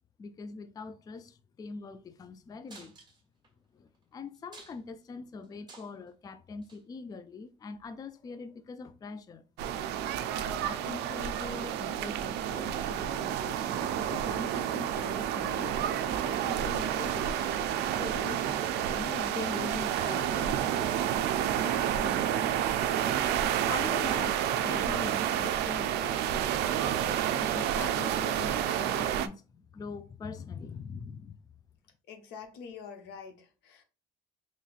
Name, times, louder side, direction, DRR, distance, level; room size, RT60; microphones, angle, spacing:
voice 1, 0.2-2.9 3.7-9.4 10.6-18.4 18.9-21.0 21.6-22.7 23.6-26.7 27.3-31.4, left 4 dB, 20° left, 0.3 m, -43 dB
sound 1, 2.7-3.5 3.9-4.0 4.3-5.0 5.4-6.1 6.6-6.8 7.8-7.9, right 3 dB, 25° right, 1.2 m, -52 dB
sound 2, 9.6-29.3, right 10 dB, 80° right, 0.4 m, -30 dB
voice 2, 32.1-33.8, left 6 dB, 85° left, 0.9 m, -46 dB
4.0 x 3.0 x 2.4 m
cardioid pair, 110°, 17 cm